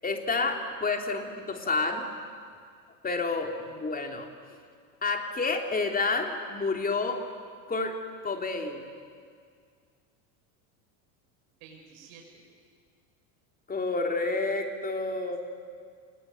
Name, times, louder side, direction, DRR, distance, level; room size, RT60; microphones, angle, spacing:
voice 1, 0.0-2.1 3.0-4.3 5.0-7.3 7.7-8.0 8.2-8.8 13.7-15.4, left 3 dB, 20° left, 3 dB, 3.3 m, -29 dB
voice 2, 11.6-12.4, right 6 dB, 70° right, 0 dB, 6.2 m, -51 dB
27.0 x 21.0 x 9.7 m, 2.1 s
supercardioid pair, 120°, 47 cm